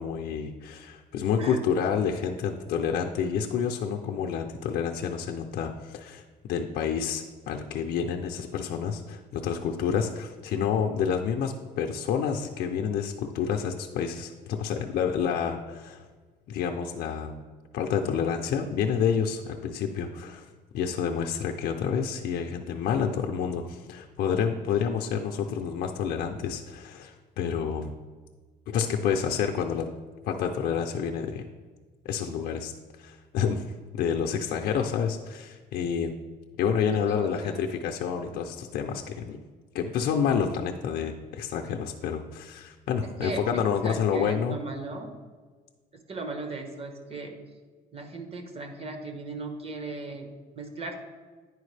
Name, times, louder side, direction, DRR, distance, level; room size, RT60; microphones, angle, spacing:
voice 1, 0.0-6.2 6.5-16.1 16.5-17.4 17.7-20.4 20.7-27.9 28.7-29.9 30.2-31.5 32.0-32.7 33.0-33.6 33.9-36.1 36.6-39.4 39.7-44.6, left 7 dB, 65° left, 2 dB, 0.5 m, -29 dB
voice 2, 37.1-37.6 43.0-45.1 45.9-47.3 47.9-50.3 50.5-51.0, right 3 dB, 35° right, 5 dB, 1.1 m, -37 dB
9.8 x 4.7 x 3.3 m, 1.4 s
cardioid pair, 110°, 17 cm